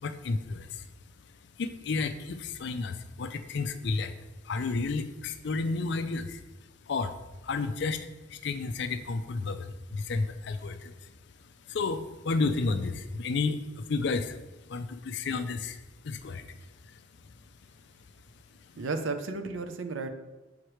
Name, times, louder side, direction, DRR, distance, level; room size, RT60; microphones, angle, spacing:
voice 1, 0.0-0.9 1.6-4.2 4.4-6.4 6.9-11.2 11.7-14.4 14.7-17.3 18.6-18.7, left 3 dB, 60° left, 10 dB, 0.4 m, -32 dB
voice 2, 18.8-20.1, right 3 dB, 80° right, 8 dB, 0.6 m, -33 dB
7.2 x 4.8 x 3.1 m, 1.1 s
head